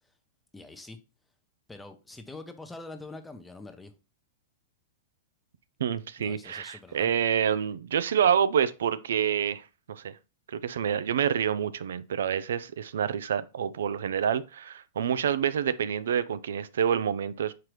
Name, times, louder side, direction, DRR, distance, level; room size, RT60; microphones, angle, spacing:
voice 1, 0.5-1.0 1.7-3.9 6.2-7.1, left 2 dB, 5° left, 0.6 m, -44 dB
voice 2, 5.8-10.2 10.5-17.5, right 8 dB, 75° right, 0.4 m, -27 dB
4.7 x 3.7 x 3.1 m
hypercardioid pair, 120°, 0 cm